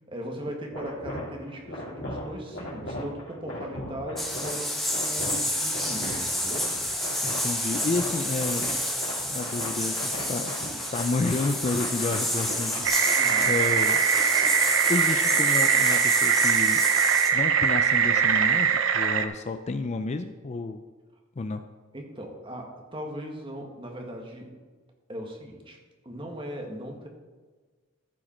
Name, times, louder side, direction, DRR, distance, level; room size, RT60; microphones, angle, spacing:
voice 1, 0.1-6.7 13.2-13.5 21.9-24.5 25.1-25.8 26.0-27.1, equal, 25° right, 1 dB, 1.4 m, -38 dB
sound 1, 0.7-16.0, left 1 dB, 85° left, 2.9 m, -38 dB
sound 2, 4.2-17.3, left 1 dB, ahead, 0.9 m, -30 dB
voice 2, 7.2-8.7 9.3-10.5 10.9-14.0 14.9-16.8 17.3-20.8 21.4-21.6, left 3 dB, 30° left, 9 dB, 0.4 m, -30 dB
sound 3, 12.8-19.3, right 7 dB, 65° right, 0.6 m, -22 dB
14.5 x 5.0 x 4.3 m, 1.4 s
head